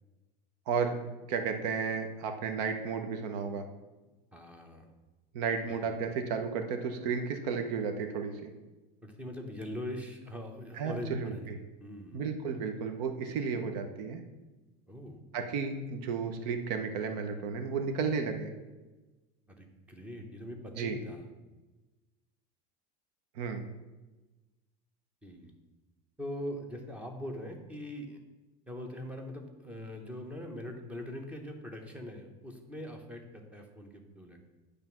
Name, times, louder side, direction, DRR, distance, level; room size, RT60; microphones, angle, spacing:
voice 1, 0.7-1.0 1.3-3.6 5.3-8.5 10.8-11.6 12.1-14.2 15.3-18.5 20.8-21.0 23.4-23.6, right 5 dB, 75° right, 6 dB, 0.9 m, -33 dB
voice 2, 4.3-4.9 5.7-5.9 9.0-11.5 11.8-12.3 14.9-15.2 19.5-21.3 25.2-25.5 26.2-28.2 28.7-34.4, left 1 dB, 5° right, 3 dB, 0.8 m, -42 dB
9.0 x 3.4 x 6.0 m, 1.2 s
cardioid pair, 160°, 21 cm